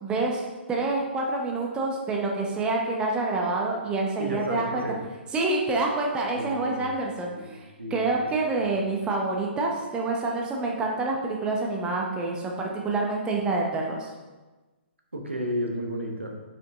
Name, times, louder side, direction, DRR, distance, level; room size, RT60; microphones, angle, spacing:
voice 1, 0.0-4.8 5.3-7.6 7.9-14.1, right 3 dB, 15° right, -1 dB, 0.8 m, -27 dB
voice 2, 4.2-5.0 6.3-6.9 7.3-8.1 15.1-16.4, equal, 90° right, 1 dB, 1.1 m, -32 dB
5.6 x 5.2 x 3.6 m, 1.2 s
figure-of-eight pair, 130°, 6 cm